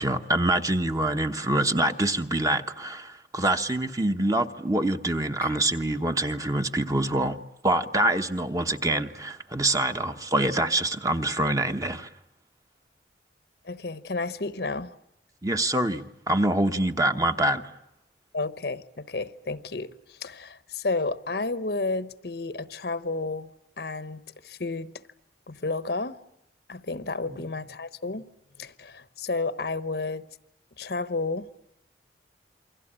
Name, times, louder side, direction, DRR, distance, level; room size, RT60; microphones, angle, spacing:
voice 1, 0.0-7.4 7.6-12.1 15.4-17.6 27.3-27.4, right 1 dB, 20° right, 1.1 m, -25 dB
voice 2, 13.6-14.9 18.3-23.5 23.8-24.9 25.5-26.2 26.7-28.2 28.6-30.2 30.8-31.5, left 3 dB, 60° left, 1.0 m, -31 dB
28.5 x 23.5 x 8.8 m
head